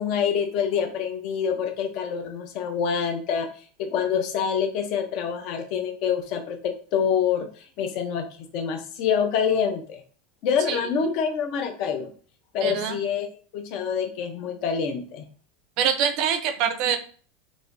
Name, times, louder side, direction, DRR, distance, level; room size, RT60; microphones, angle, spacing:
voice 1, 0.0-3.5 3.8-8.3 8.5-10.0 10.4-12.1 12.5-13.3 13.5-15.2, left 7 dB, 40° left, 5 dB, 0.7 m, -26 dB
voice 2, 12.6-13.0 15.8-17.0, right 8 dB, 40° right, 9 dB, 0.5 m, -24 dB
4.9 x 2.6 x 2.6 m, 0.42 s
supercardioid pair, 175°, 0 cm